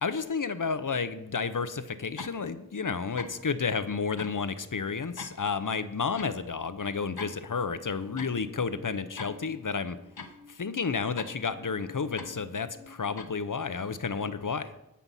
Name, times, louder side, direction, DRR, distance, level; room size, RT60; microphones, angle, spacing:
voice 1, 0.0-10.0 10.5-14.7, left 5 dB, 55° left, 12 dB, 0.8 m, -31 dB
sound 1, 2.2-2.4 3.2-3.4 4.2-4.4 5.2-5.4 6.2-6.3 7.2-7.4 8.2-8.3 9.2-9.3 10.2-10.3 11.2-11.3 12.2-12.3 13.2-13.3, left 4 dB, 75° left, 1.1 m, -41 dB
Musical instrument, 7.4-14.3, left 4 dB, 5° left, 1.2 m, -53 dB
15.5 x 5.8 x 5.6 m, 0.89 s
wide cardioid pair, 50°, 38 cm